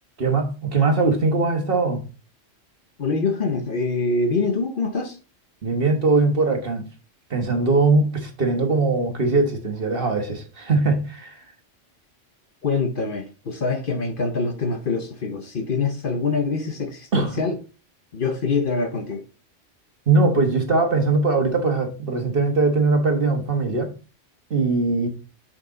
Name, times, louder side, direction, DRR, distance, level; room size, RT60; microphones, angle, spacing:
voice 1, 0.2-2.0 5.6-6.9 7.3-11.4 17.1-17.3 20.1-23.9 24.5-25.1, right 3 dB, 50° right, 1.4 m, -21 dB
voice 2, 3.0-5.2 12.6-17.6 18.1-19.2, left 4 dB, 50° left, 0.9 m, -24 dB
6.5 x 5.9 x 3.8 m
omnidirectional pair, 1.3 m